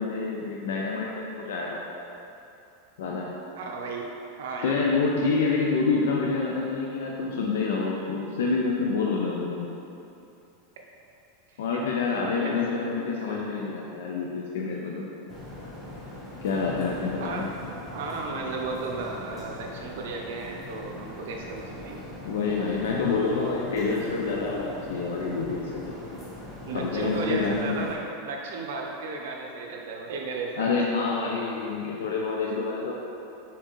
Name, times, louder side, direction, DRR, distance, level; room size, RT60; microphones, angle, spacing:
voice 1, 0.0-1.8 3.0-3.3 4.6-9.7 11.6-15.1 16.4-17.5 22.2-26.0 26.7-27.8 30.6-32.9, left 4 dB, 85° left, -2 dB, 0.4 m, -27 dB
voice 2, 3.6-4.1 4.4-4.7 11.5-11.8 12.1-13.1 17.2-17.5 17.9-22.0 26.7-30.7, right 3 dB, 75° right, 0 dB, 0.6 m, -34 dB
sound 1, 15.3-28.0, left 1 dB, 10° left, 0.6 m, -41 dB
4.5 x 3.6 x 3.0 m, 2.8 s
supercardioid pair, 170°, 0 cm